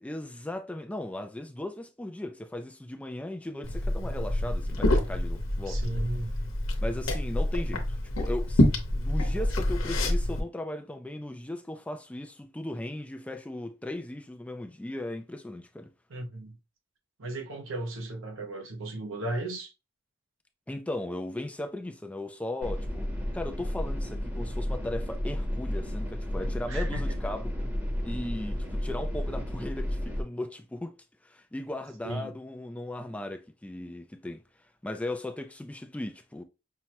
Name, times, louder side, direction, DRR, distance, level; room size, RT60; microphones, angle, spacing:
voice 1, 0.0-5.9 6.8-8.6 8.9-15.9 20.7-23.1 23.3-27.5 28.0-31.0 31.2-34.4 34.8-36.4, left 1 dB, 5° left, 0.3 m, -37 dB
Liquid, 3.6-10.4, left 1 dB, 85° left, 0.9 m, -27 dB
voice 2, 5.7-6.3 16.1-16.6 17.2-19.7 26.7-27.0 32.0-32.3, right 2 dB, 70° right, 0.8 m, -35 dB
sound 1, 22.6-30.2, left 1 dB, 10° right, 0.8 m, -32 dB
5.6 x 2.1 x 2.9 m
head